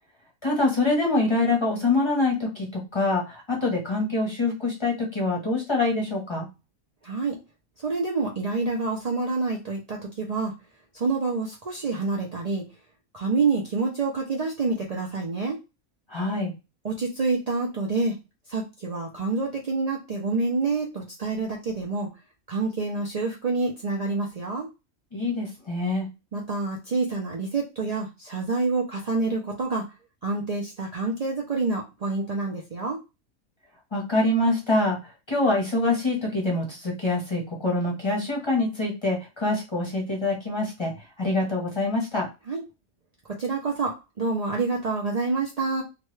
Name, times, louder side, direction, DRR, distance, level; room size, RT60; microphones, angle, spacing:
voice 1, 0.4-6.5 16.1-16.5 25.1-26.1 33.9-42.3, left 2 dB, 25° left, -1 dB, 0.7 m, -25 dB
voice 2, 7.0-7.4 7.8-10.5 10.9-12.6 13.1-15.6 16.8-18.2 18.5-22.1 22.5-24.7 26.3-29.9 30.2-33.0 42.5-42.6 43.4-45.8, right 3 dB, 80° right, -2 dB, 0.3 m, -27 dB
2.9 x 2.2 x 3.1 m, 0.26 s
omnidirectional pair, 1.5 m